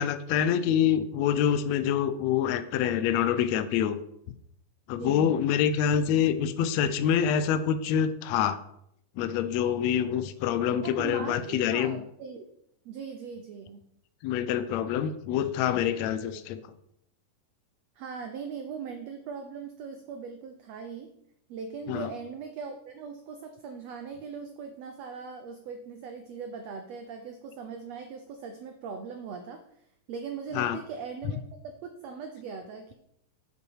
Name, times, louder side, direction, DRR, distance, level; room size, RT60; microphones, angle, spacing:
voice 1, 0.0-4.0 4.9-8.6 9.2-12.0 14.2-16.6 21.9-22.1 30.5-30.8, left 9 dB, 90° left, 12 dB, 1.5 m, -26 dB
voice 2, 5.0-5.4 10.8-12.4 12.8-13.8 16.3-16.4 18.0-21.1 21.5-29.6 30.1-32.9, right 5 dB, 80° right, 6 dB, 1.5 m, -40 dB
8.3 x 7.7 x 4.7 m, 0.75 s
omnidirectional pair, 3.9 m